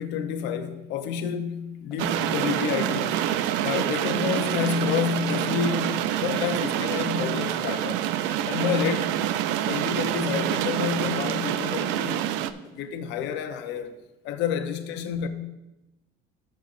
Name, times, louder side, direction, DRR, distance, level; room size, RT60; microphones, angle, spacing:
voice 1, 0.0-3.3 3.6-8.0 8.4-9.2 9.7-12.3 12.7-15.3, left 8 dB, 70° left, 0.9 m, -29 dB
sound 1, 1.4-1.5 1.9-2.1 2.5-2.6 3.0-3.2 3.6-3.8 4.2-4.3 4.7-4.9 5.3-5.5 5.9-6.1 6.4-6.6 7.0-7.2 7.6-7.8 8.2-8.3 8.7-8.9 9.3-9.5 9.8-10.0 10.5-10.6 11.0-11.2 11.5-11.7 12.1-12.3 12.6-12.8 13.2-13.4 13.7-13.9, left 1 dB, ahead, 3.0 m, -50 dB
sound 2, 2.0-12.5, right 11 dB, 75° right, 0.5 m, -27 dB
12.0 x 6.4 x 2.6 m
cardioid pair, 125°, 19 cm